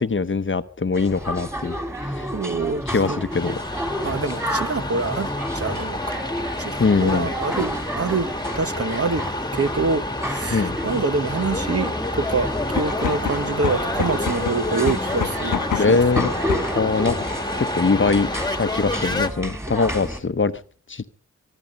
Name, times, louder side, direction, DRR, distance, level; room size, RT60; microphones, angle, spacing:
voice 1, 0.0-1.8 2.0-2.3 2.9-3.6 6.8-7.3 10.5-10.8 15.8-16.3 16.7-17.2 17.6-18.3 18.6-20.5 20.9-21.1, left 4 dB, 40° left, 13 dB, 0.8 m, -22 dB
sound 1, 0.9-20.2, equal, 10° right, 3.3 m, -31 dB
voice 2, 2.3-3.2 4.0-6.2 6.6-8.3 8.5-9.2 9.5-16.0, right 4 dB, 50° right, 12 dB, 1.0 m, -26 dB
sound 2, 3.3-19.3, left 1 dB, 15° left, 1.5 m, -29 dB
sound 3, 12.8-16.9, left 7 dB, 90° left, 0.9 m, -28 dB
23.5 x 10.0 x 5.3 m, 0.43 s
wide cardioid pair, 60°, 30 cm